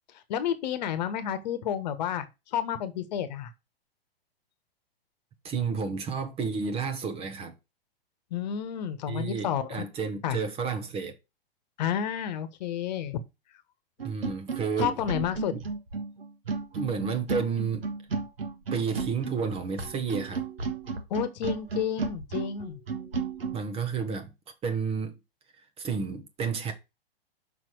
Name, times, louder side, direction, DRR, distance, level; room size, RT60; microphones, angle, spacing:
voice 1, 0.3-2.3 2.5-3.5 8.3-9.8 10.2-10.4 11.8-13.2 14.8-15.5 21.1-22.8, left 9 dB, 45° left, 1.3 m, -30 dB
voice 2, 5.4-7.5 9.1-11.1 14.0-14.9 16.7-17.9 18.7-20.5 23.5-24.3 24.6-25.2 25.8-26.7, right 5 dB, 20° right, 1.1 m, -31 dB
sound 1, 14.0-23.6, right 4 dB, 70° right, 1.6 m, -33 dB
6.1 x 5.9 x 4.6 m
figure-of-eight pair, 110°, 30 cm